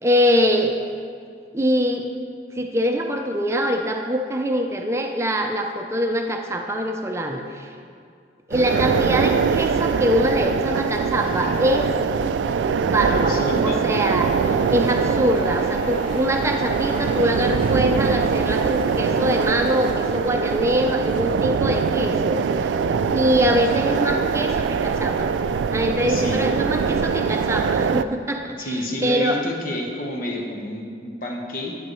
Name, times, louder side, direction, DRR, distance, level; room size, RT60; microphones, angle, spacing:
voice 1, 0.0-0.8 1.5-2.1 2.5-7.7 8.5-11.9 12.8-22.7 23.1-25.3 25.7-29.4, equal, 15° right, 3 dB, 0.5 m, -23 dB
sound 1, 8.5-28.0, right 6 dB, 90° right, 0.3 m, -23 dB
Truck, 10.6-26.5, left 1 dB, 30° left, 1.4 m, -43 dB
voice 2, 11.2-11.8 13.1-13.8 25.9-26.4 28.6-31.8, left 1 dB, 50° left, 0 dB, 1.2 m, -29 dB
10.5 x 9.1 x 3.1 m, 2.3 s
head